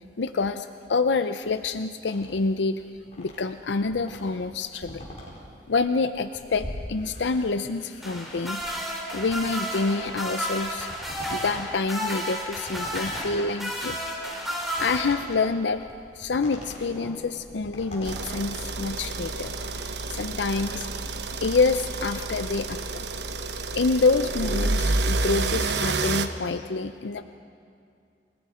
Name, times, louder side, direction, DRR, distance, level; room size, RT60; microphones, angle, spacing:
voice 1, 0.2-2.8 3.2-5.1 5.7-8.6 9.1-10.9 11.3-14.0 14.8-15.8 16.1-19.6 20.1-20.9 21.4-23.0 23.7-27.2, left 4 dB, 70° left, 10 dB, 0.6 m, -27 dB
sound 1, 2.0-19.3, left 1 dB, 40° left, 4.6 m, -43 dB
sound 2, 8.0-15.6 17.0-17.1, equal, ahead, 3.1 m, -32 dB
sound 3, 18.0-26.3, right 3 dB, 65° right, 1.0 m, -29 dB
29.5 x 19.0 x 5.0 m, 2.4 s
head